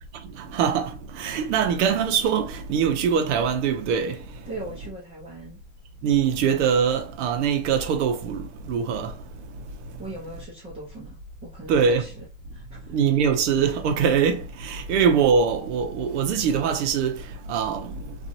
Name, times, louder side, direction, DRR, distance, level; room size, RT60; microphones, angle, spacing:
voice 1, 0.4-4.2 6.0-9.1 11.7-12.1 12.9-17.2 17.5-18.0, right 7 dB, 60° right, 0.8 m, -23 dB
voice 2, 4.4-5.6 10.0-12.2 12.5-12.9, right 1 dB, 15° right, 0.8 m, -39 dB
2.8 x 2.6 x 2.6 m
supercardioid pair, 150°, 39 cm